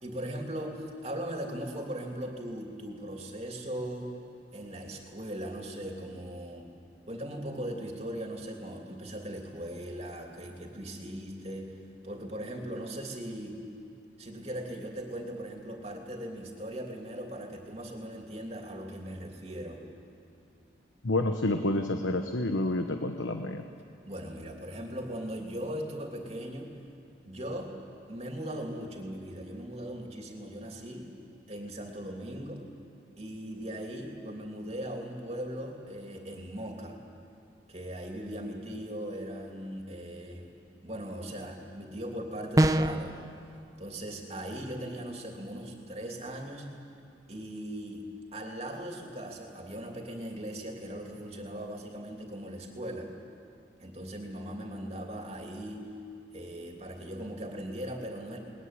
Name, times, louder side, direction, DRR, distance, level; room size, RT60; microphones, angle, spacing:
voice 1, 0.0-4.1 4.5-6.7 7.1-11.8 12.0-13.6 14.2-19.8 24.1-26.7 27.3-27.7 28.1-31.1 31.5-32.6 33.2-37.0 37.7-40.5 40.8-43.2 43.8-46.7 47.3-48.1 48.3-53.1 53.8-55.8 56.3-58.4, right 1 dB, 35° right, 2 dB, 2.9 m, -39 dB
voice 2, 21.0-23.6, left 2 dB, 85° left, 6 dB, 1.1 m, -29 dB
sound 1, 42.6-43.1, right 1 dB, 20° right, 0.6 m, -23 dB
22.5 x 20.5 x 9.7 m, 2.5 s
head